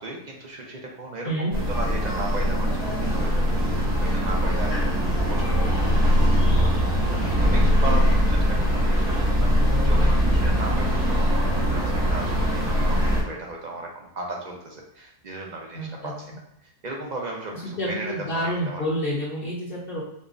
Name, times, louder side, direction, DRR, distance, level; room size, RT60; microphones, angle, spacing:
voice 1, 0.0-16.1 16.6-18.8, right 2 dB, 50° right, -1 dB, 0.5 m, -36 dB
sound 1, 1.5-13.2, equal, 90° right, 1.7 m, -21 dB
voice 2, 15.7-16.1 17.8-20.0, equal, 50° left, -6 dB, 0.9 m, -28 dB
5.2 x 2.1 x 2.5 m, 0.80 s
omnidirectional pair, 1.4 m